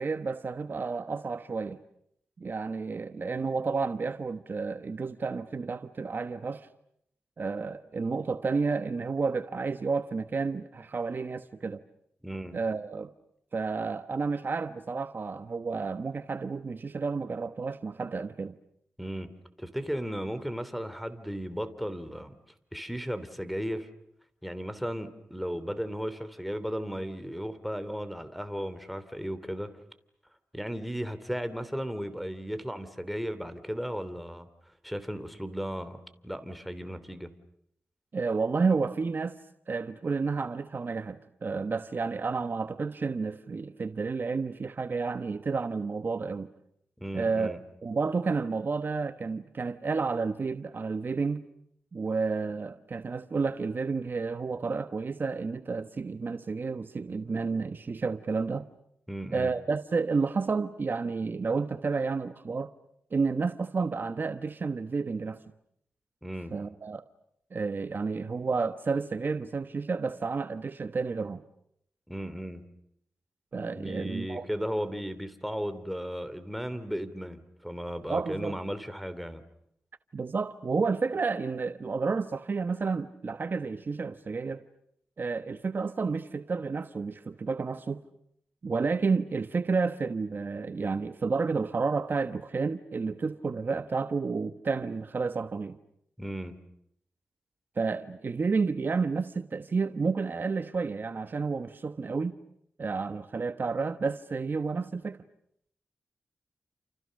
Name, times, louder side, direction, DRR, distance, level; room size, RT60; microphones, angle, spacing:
voice 1, 0.0-1.8 2.4-6.7 7.4-11.8 12.5-13.1 13.5-18.6 38.1-39.3 39.7-46.5 47.1-51.5 51.9-58.7 59.3-62.7 63.1-65.4 66.5-67.0 67.5-71.4 73.5-74.5 78.1-78.6 80.1-84.6 85.2-88.0 88.6-95.8 97.8-102.4 102.8-105.2, right 4 dB, 50° right, 1.1 m, -31 dB
voice 2, 12.2-12.6 19.0-19.3 19.6-22.3 22.7-23.9 24.4-29.7 30.5-34.5 34.8-37.3 47.0-47.6 59.1-59.5 66.2-66.5 72.1-72.6 73.8-79.4 96.2-96.6, equal, ahead, 3.1 m, -35 dB
29.5 x 28.5 x 6.5 m
cardioid pair, 60°, 4 cm